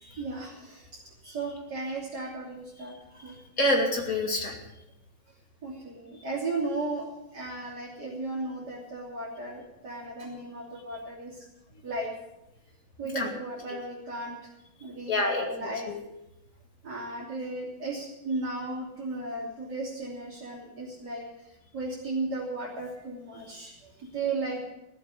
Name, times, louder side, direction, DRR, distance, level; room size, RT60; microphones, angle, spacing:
voice 1, 0.1-3.4 5.6-11.5 11.8-12.1 13.0-14.5 14.8-15.9 16.8-24.7, right 2 dB, 50° right, -7 dB, 3.9 m, -35 dB
voice 2, 3.6-4.6 13.1-13.3 13.7-13.8 15.1-16.0, left 1 dB, 45° left, 0 dB, 3.0 m, -27 dB
16.5 x 8.0 x 8.4 m, 0.90 s
omnidirectional pair, 2.2 m